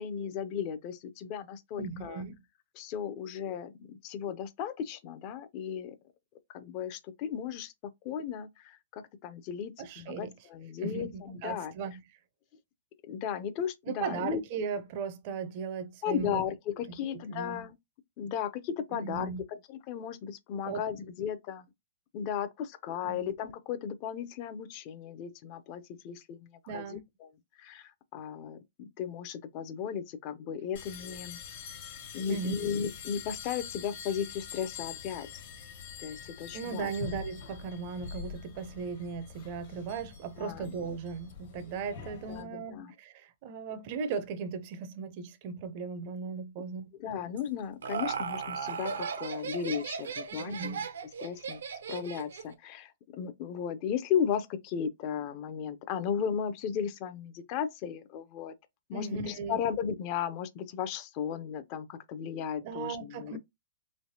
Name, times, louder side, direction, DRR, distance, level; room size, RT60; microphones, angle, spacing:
voice 1, 0.0-2.2 2.8-6.0 6.5-7.7 8.0-11.7 13.1-14.4 16.0-17.8 18.2-21.7 22.1-27.3 27.6-31.4 32.1-35.3 36.0-36.9 40.4-40.7 42.3-42.9 47.0-50.9 51.2-51.6 51.9-58.5 58.9-63.4, left 8 dB, 40° left, 0.5 m, -35 dB
voice 2, 1.8-2.4 9.8-10.3 10.8-12.0 13.9-16.4 17.1-17.7 18.9-19.4 20.6-20.8 23.0-23.3 26.7-27.1 32.3-32.5 36.5-46.9 50.4-50.8 58.9-59.6 62.6-63.4, right 5 dB, 45° right, 0.5 m, -37 dB
sound 1, 30.7-42.4, left 7 dB, 60° left, 1.3 m, -45 dB
Laughter, 47.4-52.5, right 6 dB, 90° right, 0.6 m, -36 dB
3.2 x 3.1 x 2.7 m
hypercardioid pair, 145°, 0 cm